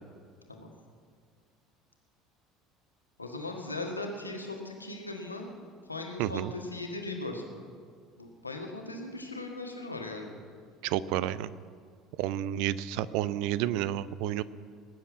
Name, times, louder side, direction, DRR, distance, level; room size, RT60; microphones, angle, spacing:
voice 1, 3.2-5.5 5.9-7.6 8.2-10.4, left 2 dB, 85° left, 2 dB, 1.6 m, -38 dB
voice 2, 6.2-6.5 10.8-11.5 12.2-14.4, right 12 dB, 55° right, 18 dB, 0.5 m, -30 dB
19.5 x 7.6 x 8.5 m, 2.1 s
figure-of-eight pair, 65°, 0 cm